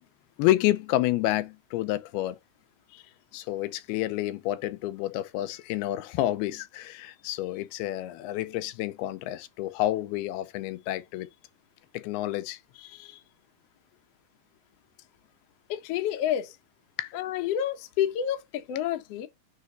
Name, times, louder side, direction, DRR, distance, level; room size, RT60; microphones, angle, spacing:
voice 1, 0.4-2.4 2.9-3.0 3.3-11.3 11.9-13.2 17.0-17.1, left 15 dB, 90° left, 2.6 m, -29 dB
voice 2, 15.7-16.6 17.1-19.3, left 10 dB, 75° left, 1.4 m, -29 dB
9.5 x 3.5 x 3.8 m
omnidirectional pair, 4.4 m